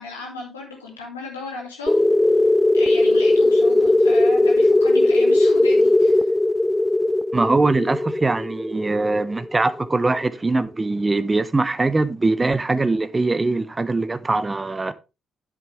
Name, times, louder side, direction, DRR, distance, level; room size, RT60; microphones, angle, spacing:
voice 1, 0.0-2.0 2.7-6.3, left 3 dB, 85° left, 3.2 m, -35 dB
sound 1, 1.9-10.2, left 2 dB, 15° left, 0.4 m, -18 dB
voice 2, 7.3-14.9, right 3 dB, 25° right, 0.9 m, -22 dB
10.5 x 7.6 x 3.4 m
figure-of-eight pair, 45°, 0 cm